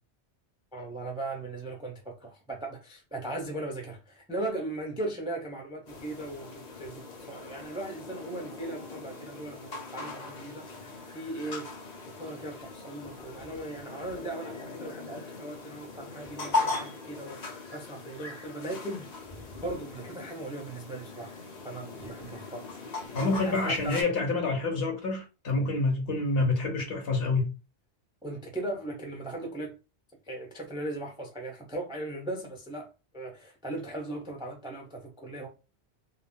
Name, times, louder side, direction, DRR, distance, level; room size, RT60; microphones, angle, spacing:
voice 1, 0.7-10.9 11.1-11.7 12.2-21.4 21.6-23.2 23.4-24.0 28.2-29.8 30.2-32.9 33.1-35.5, right 2 dB, 10° right, 0.3 m, -38 dB
sound 1, 5.9-24.0, left 3 dB, 45° left, 0.7 m, -39 dB
voice 2, 23.1-27.5, left 3 dB, 65° left, 1.0 m, -27 dB
2.3 x 2.1 x 3.5 m
omnidirectional pair, 1.1 m